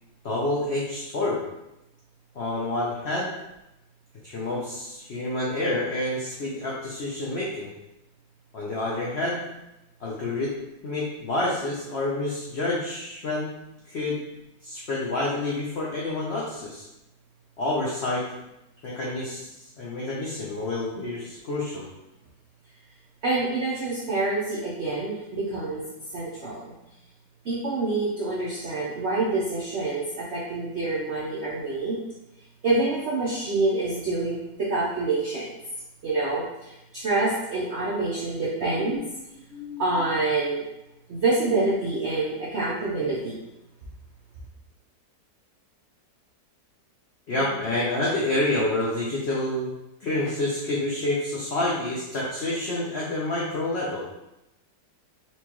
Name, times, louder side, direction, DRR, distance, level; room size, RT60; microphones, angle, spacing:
voice 1, 0.2-1.4 2.3-3.3 4.2-7.7 8.5-9.4 10.0-10.5 10.8-13.5 13.9-14.2 14.6-16.9 17.6-18.2 18.8-19.5 19.8-21.9 38.6-39.0 39.5-39.8 47.3-49.7 50.0-54.1, left 2 dB, 75° left, -5 dB, 0.5 m, -28 dB
voice 2, 23.2-25.9 26.1-26.7 27.4-32.0 32.6-35.5 36.0-39.0 39.8-40.6 41.1-43.4, right 2 dB, 75° right, -6 dB, 0.6 m, -27 dB
4.3 x 2.3 x 2.9 m, 0.92 s
omnidirectional pair, 1.8 m